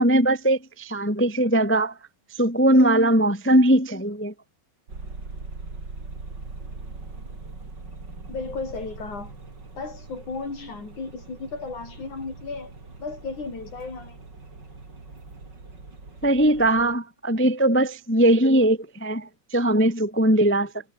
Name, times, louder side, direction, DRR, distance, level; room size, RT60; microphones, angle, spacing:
voice 1, 0.0-1.9 2.4-4.3 16.2-20.7, right 1 dB, 10° left, 0.8 m, -20 dB
sound 1, 4.9-17.0, right 3 dB, 25° right, 4.6 m, -41 dB
voice 2, 8.3-9.3 9.8-12.7 13.0-14.2, left 4 dB, 45° left, 9.3 m, -34 dB
omnidirectional pair, 4.9 m